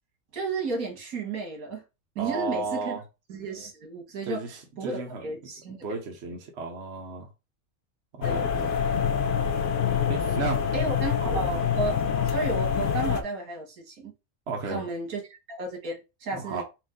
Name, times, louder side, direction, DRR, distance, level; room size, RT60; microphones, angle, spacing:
voice 1, 0.3-1.8 2.2-3.0 3.3-4.4 4.8-5.8 8.2-8.5 10.7-14.1 14.7-16.6, right 3 dB, 80° right, 1.9 m, -33 dB
voice 2, 2.2-3.0 4.2-5.3 5.8-7.3 8.1-8.7 10.1-10.6 11.2-11.8 14.5-14.8 16.3-16.6, right 4 dB, 55° right, 1.2 m, -34 dB
sound 1, 8.2-13.2, left 7 dB, 60° left, 0.5 m, -26 dB
4.5 x 2.6 x 3.7 m
omnidirectional pair, 1.5 m